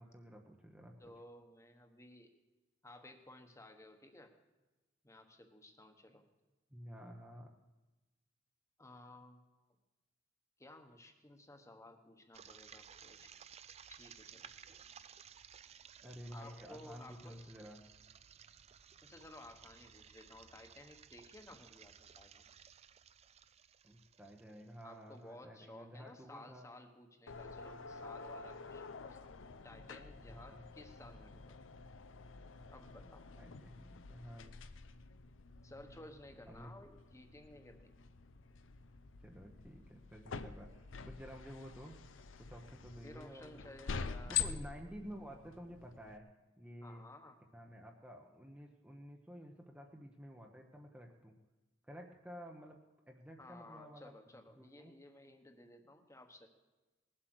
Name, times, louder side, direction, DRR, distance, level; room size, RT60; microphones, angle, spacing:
voice 1, 0.0-1.1 6.7-7.5 16.0-17.9 23.8-26.7 30.3-30.6 33.0-34.6 36.5-36.7 39.2-42.0 42.4-43.7 44.3-46.3 46.6-47.0 47.5-51.4 51.8-52.8 53.1-54.1 54.6-54.9, equal, 5° right, 1 dB, 0.9 m, -52 dB
voice 2, 1.0-2.3 2.8-4.3 5.0-6.3 8.8-9.5 10.6-13.3 13.9-14.5 16.3-17.5 19.0-22.5 24.8-29.3 29.6-31.6 32.7-33.3 35.6-37.9 43.0-44.4 46.8-47.4 53.4-56.5, left 1 dB, 15° left, 5 dB, 1.2 m, -56 dB
sound 1, 12.3-25.2, right 8 dB, 35° right, 0.4 m, -58 dB
sound 2, 27.3-46.2, left 6 dB, 85° left, 0.7 m, -46 dB
19.5 x 7.9 x 6.3 m, 1.1 s
head